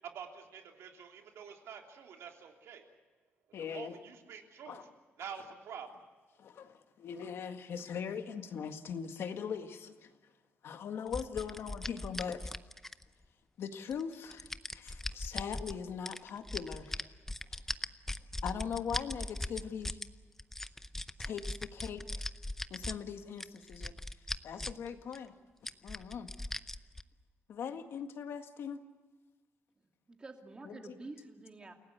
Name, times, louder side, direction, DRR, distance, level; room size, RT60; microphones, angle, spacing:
voice 1, 0.0-2.9 3.6-4.9 5.2-6.0, right 7 dB, 90° right, 3 dB, 3.3 m, -47 dB
voice 2, 3.5-3.9 4.7-4.8 6.4-10.1 10.6-12.6 13.6-17.1 18.4-20.0 21.2-22.2 22.7-23.9 24.4-25.4 25.8-26.3 27.5-28.8 30.6-30.8, left 7 dB, 65° left, 7 dB, 1.8 m, -40 dB
sound 1, 11.1-13.2 13.9-15.8 16.1-20.1 20.4-22.9 23.4-24.9 25.1-25.2 25.7-27.0, left 1 dB, 5° left, 0.6 m, -39 dB
voice 3, 29.8-31.7, right 3 dB, 20° right, 4 dB, 2.5 m, -49 dB
29.0 x 17.5 x 8.1 m, 1.3 s
wide cardioid pair, 160°, 5 cm